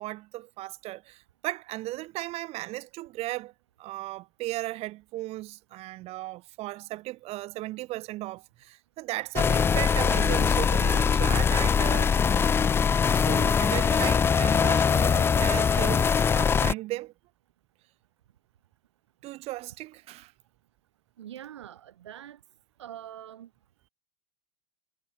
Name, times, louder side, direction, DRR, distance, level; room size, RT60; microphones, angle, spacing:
voice 1, 0.0-3.5 3.8-12.1 13.1-17.1 19.2-20.3, right 18 dB, 45° right, 2.1 m, -36 dB
sound 1, 9.4-16.7, left 6 dB, 15° left, 0.4 m, -22 dB
voice 2, 21.2-22.4 22.8-23.5, right 11 dB, 75° right, 1.1 m, -43 dB
hypercardioid pair, 95°, 15 cm